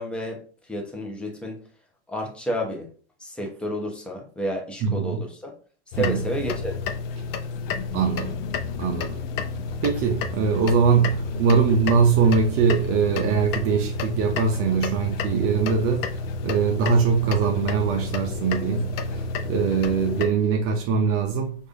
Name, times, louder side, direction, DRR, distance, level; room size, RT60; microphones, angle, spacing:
voice 1, 0.0-1.6 2.1-2.9 3.2-5.5 5.9-6.8, equal, 5° left, 0.8 m, -31 dB
voice 2, 4.8-5.2 6.0-6.2 7.9-8.4 8.8-9.2 9.8-21.6, right 5 dB, 40° right, 0.6 m, -22 dB
sound 1, 5.9-20.3, left 3 dB, 55° left, 0.6 m, -30 dB
4.6 x 2.6 x 2.6 m
hypercardioid pair, 100°, 34 cm